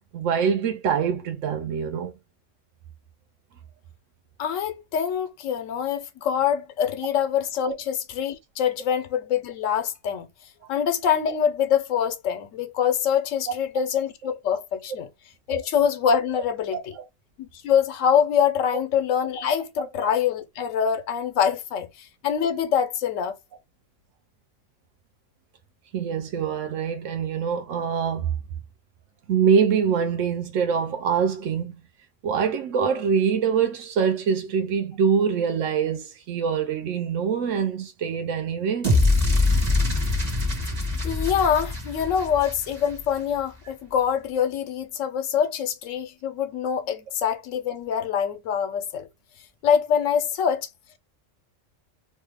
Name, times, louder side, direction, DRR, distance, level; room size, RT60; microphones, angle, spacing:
voice 1, 0.1-2.1 16.9-17.0 19.4-19.5 19.8-19.9 25.9-28.3 29.3-31.7 32.2-38.9, right 7 dB, 80° right, 1.0 m, -24 dB
voice 2, 4.4-10.3 10.7-15.1 15.5-16.9 17.4-23.3 41.0-49.1 49.6-50.7, left 8 dB, 80° left, 1.0 m, -24 dB
sound 1, 38.8-43.1, left 2 dB, 30° right, 1.2 m, -23 dB
3.2 x 2.2 x 3.3 m
omnidirectional pair, 1.3 m